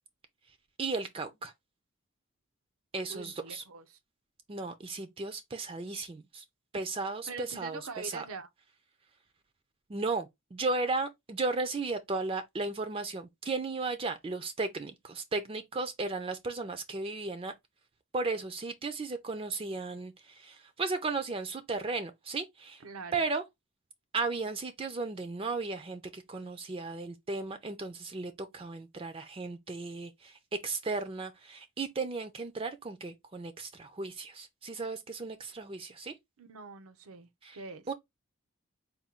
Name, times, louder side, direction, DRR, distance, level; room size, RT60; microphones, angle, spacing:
voice 1, 0.8-1.5 2.9-3.6 4.5-6.4 6.7-8.2 9.9-17.5 18.1-22.8 23.1-23.4 24.1-36.2 37.4-37.6 37.9-38.0, right 3 dB, 25° right, 0.4 m, -35 dB
voice 2, 3.1-4.0 7.3-8.5 22.8-23.1 36.4-37.9, right 4 dB, 80° right, 0.6 m, -43 dB
4.3 x 2.3 x 3.6 m
head